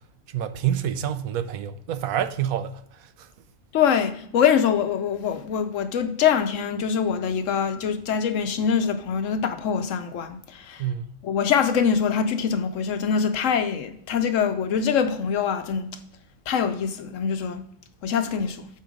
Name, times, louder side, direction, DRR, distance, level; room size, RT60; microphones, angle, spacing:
voice 1, 0.3-3.3 10.8-11.1, right 10 dB, 85° right, 1.1 m, -28 dB
voice 2, 3.7-10.8 11.2-15.9 16.5-17.6 18.0-18.7, left 7 dB, 70° left, 1.0 m, -24 dB
8.4 x 4.4 x 5.1 m
omnidirectional pair, 1.4 m